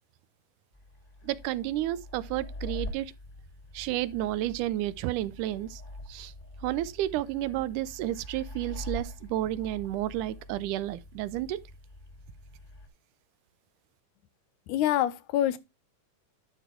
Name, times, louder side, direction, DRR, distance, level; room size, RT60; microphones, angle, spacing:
sound 1, 0.7-12.9, left 1 dB, 20° left, 1.6 m, -44 dB
voice 1, 1.2-3.1 3.7-5.8 6.1-6.3 6.6-11.6, right 14 dB, 80° right, 2.0 m, -31 dB
voice 2, 14.7-15.6, left 12 dB, 75° left, 2.2 m, -26 dB
11.0 x 4.4 x 4.8 m
omnidirectional pair, 3.7 m